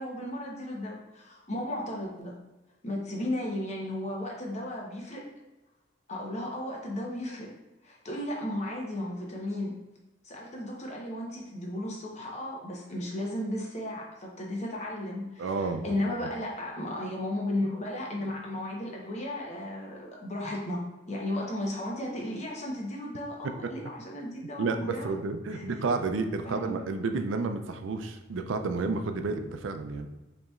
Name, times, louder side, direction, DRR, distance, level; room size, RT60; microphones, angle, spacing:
voice 1, 0.0-2.4 2.8-5.3 6.1-7.5 7.8-9.8 10.2-20.8 21.1-25.2 25.5-25.8 26.4-26.9, left 1 dB, 35° left, -1 dB, 0.9 m, -35 dB
voice 2, 15.4-15.9 24.6-30.1, right 3 dB, 85° right, 8 dB, 0.4 m, -31 dB
5.2 x 3.0 x 2.4 m, 1.1 s
head